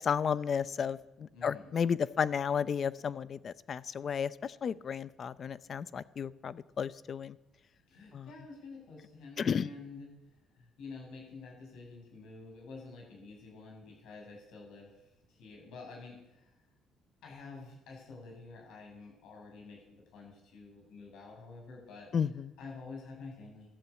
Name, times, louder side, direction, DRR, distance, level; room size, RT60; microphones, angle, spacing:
voice 1, 0.0-7.4 8.1-8.3 9.4-9.7 22.1-22.5, left 7 dB, 45° left, 17 dB, 0.6 m, -33 dB
voice 2, 1.3-1.8 7.9-10.1 10.5-14.9 15.3-16.5 17.2-22.1 22.6-23.7, left 4 dB, 75° left, -1 dB, 7.6 m, -49 dB
13.5 x 13.0 x 8.3 m, 0.93 s
cardioid pair, 110°, 0 cm